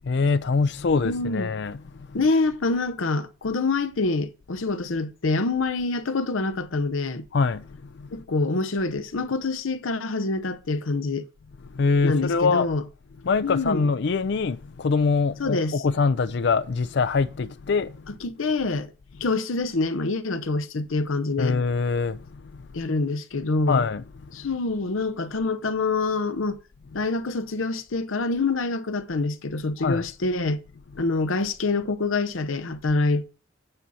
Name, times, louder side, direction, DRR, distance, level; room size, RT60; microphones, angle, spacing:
voice 1, 0.0-2.2 7.3-8.1 11.6-12.7 13.2-18.1 19.1-19.2 21.4-22.7 23.7-24.5 26.9-27.0 29.8-30.1 30.9-31.1, left 4 dB, 60° left, 0.4 m, -24 dB
voice 2, 1.0-1.5 2.1-7.2 8.1-11.3 12.0-12.8 13.4-13.9 15.4-15.8 18.2-18.9 19.2-21.6 22.7-23.8 24.3-26.6 26.9-30.6 31.0-33.3, left 3 dB, 90° left, 0.8 m, -26 dB
9.0 x 4.1 x 6.9 m
head